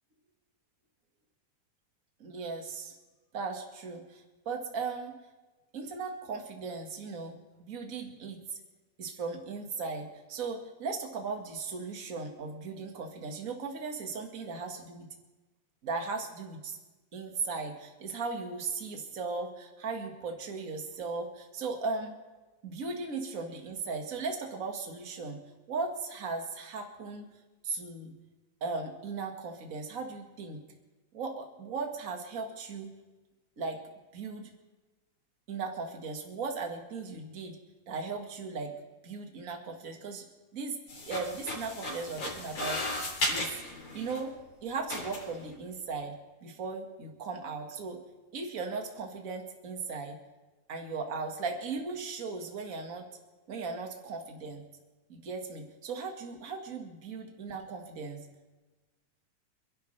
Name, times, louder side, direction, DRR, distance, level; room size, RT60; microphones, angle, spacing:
voice 1, 2.2-2.9 3.3-5.2 5.7-8.6 9.0-15.1 15.8-16.8 17.1-22.2 22.6-25.4 25.7-27.2 27.6-28.1 28.6-30.6 31.1-32.9 33.6-33.8 34.1-34.5 35.5-37.6 37.9-38.7 39.0-40.2 40.5-40.8 41.0-43.6 43.9-44.3 44.6-46.1 46.4-48.0 48.3-50.2 50.7-53.0 53.5-54.6 55.1-58.2, right 4 dB, 35° right, 3 dB, 1.7 m, -37 dB
sound 1, 40.9-44.2 44.9-45.4, left 2 dB, 50° left, 4.9 m, -35 dB
27.5 x 11.5 x 3.4 m, 1.2 s
omnidirectional pair, 3.7 m